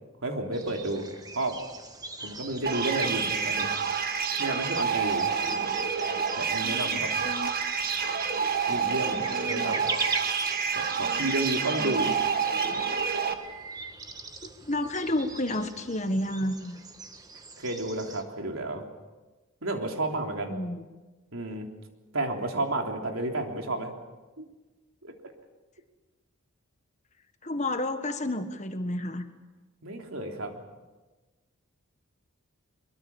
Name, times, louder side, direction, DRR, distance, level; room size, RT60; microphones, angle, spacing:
voice 1, 0.2-1.6 2.2-3.7 4.4-5.3 6.4-7.1 8.7-9.9 10.7-12.1 17.6-18.8 19.6-20.6 21.3-21.7 22.1-23.9 24.4-24.5 25.0-25.1 29.8-30.5, right 2 dB, 75° right, 3 dB, 3.4 m, -31 dB
sound 1, 0.5-18.2, right 3 dB, 15° right, 1.5 m, -40 dB
sound 2, 2.7-13.3, right 6 dB, 45° right, 1.6 m, -28 dB
voice 2, 6.6-7.5 9.2-9.8 10.9-12.1 14.4-16.8 20.5-20.9 27.4-29.3, left 1 dB, 35° left, 8 dB, 1.5 m, -32 dB
23.5 x 23.5 x 7.2 m, 1.2 s
head